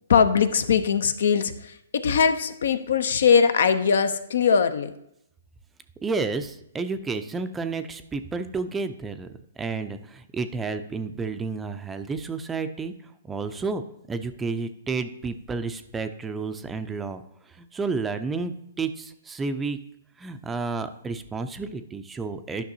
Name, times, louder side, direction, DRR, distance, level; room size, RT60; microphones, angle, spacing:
voice 1, 0.1-4.9, left 6 dB, 70° left, 11 dB, 0.6 m, -21 dB
voice 2, 6.0-9.3 9.6-12.9 13.2-13.8 14.1-19.8 20.2-22.6, right 4 dB, 10° right, 9 dB, 0.4 m, -31 dB
10.5 x 5.8 x 2.7 m, 0.80 s
hypercardioid pair, 140°, 0 cm